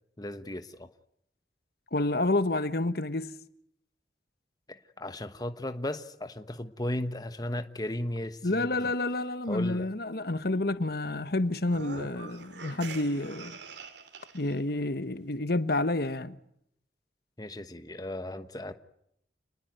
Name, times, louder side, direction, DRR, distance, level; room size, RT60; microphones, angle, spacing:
voice 1, 0.2-0.9 4.7-8.9 9.5-9.9 17.4-18.7, left 1 dB, 20° left, 1.2 m, -36 dB
voice 2, 1.9-3.3 8.4-13.6 14.3-16.4, left 2 dB, 55° left, 1.2 m, -29 dB
sound 1, 11.6-14.6, right 4 dB, 70° right, 2.8 m, -44 dB
29.0 x 20.0 x 9.2 m
head